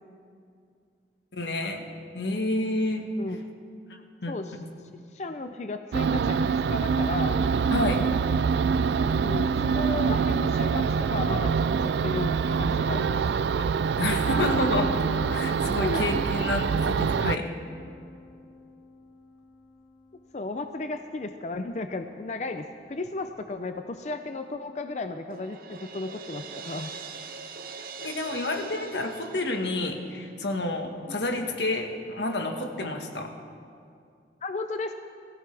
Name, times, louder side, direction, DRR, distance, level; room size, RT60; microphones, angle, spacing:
voice 1, 1.3-1.9 2.1-3.1 3.9-4.6 7.7-8.1 14.0-15.0 15.3-17.5 28.0-33.3, left 2 dB, 85° left, 4 dB, 1.5 m, -29 dB
voice 2, 5.1-7.4 9.2-13.2 15.8-16.2 20.3-26.9 31.1-31.2 34.4-34.9, left 3 dB, 40° left, 7 dB, 0.5 m, -34 dB
sound 1, 5.9-17.4, right 5 dB, 80° right, 0.3 m, -25 dB
Piano, 14.3-20.1, left 3 dB, 10° left, 4.1 m, -40 dB
Crash cymbal, 25.3-30.2, right 5 dB, 55° right, 0.8 m, -42 dB
23.0 x 15.5 x 3.4 m, 2.4 s
head